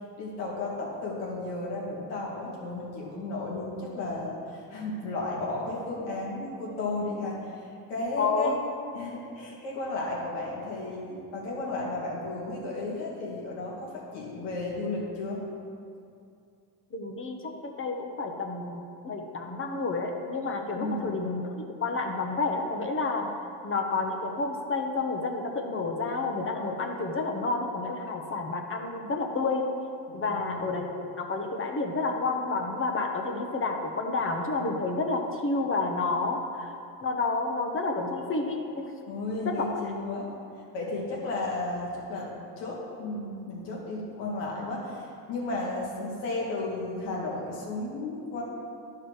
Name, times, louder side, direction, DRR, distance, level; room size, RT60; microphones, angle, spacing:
voice 1, 0.2-8.6 8.9-15.4 20.8-21.2 30.1-30.8 39.1-40.3 40.7-48.4, left 2 dB, 85° left, -4 dB, 2.3 m, -34 dB
voice 2, 8.2-8.5 16.9-23.3 23.6-29.6 30.1-30.9 31.2-36.7 37.0-38.9 39.4-39.7, left 3 dB, 30° left, 3 dB, 1.0 m, -30 dB
11.5 x 4.7 x 4.8 m, 2.5 s
cardioid pair, 105°, 41 cm